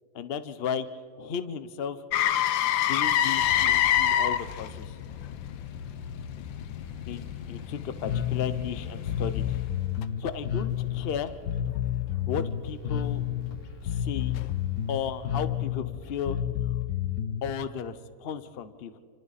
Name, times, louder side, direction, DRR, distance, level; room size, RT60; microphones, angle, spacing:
voice 1, 0.1-0.9 1.2-2.0 2.9-5.0 7.1-9.5 10.2-11.3 12.3-13.2 13.8-14.4 14.9-16.4 17.4-19.0, left 7 dB, 45° left, 12 dB, 0.8 m, -34 dB
Motor vehicle (road), 2.1-10.0 14.4-14.5, left 10 dB, 85° left, 1.5 m, -28 dB
sound 1, 3.3-15.7, left 1 dB, 30° right, 2.3 m, -49 dB
Bass guitar, 8.0-17.5, left 10 dB, 65° left, 1.4 m, -30 dB
29.0 x 26.5 x 4.2 m, 2.2 s
omnidirectional pair, 2.1 m